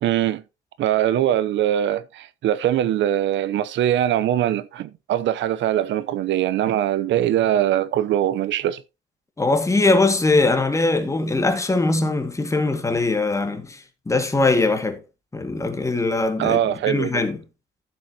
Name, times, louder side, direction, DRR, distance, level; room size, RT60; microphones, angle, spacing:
voice 1, 0.0-0.4 0.8-8.8 16.4-17.2, right 11 dB, 80° right, 0.8 m, -22 dB
voice 2, 9.4-15.0 15.3-17.4, left 3 dB, 15° left, 2.1 m, -21 dB
14.0 x 7.5 x 2.9 m
cardioid pair, 125°, 19 cm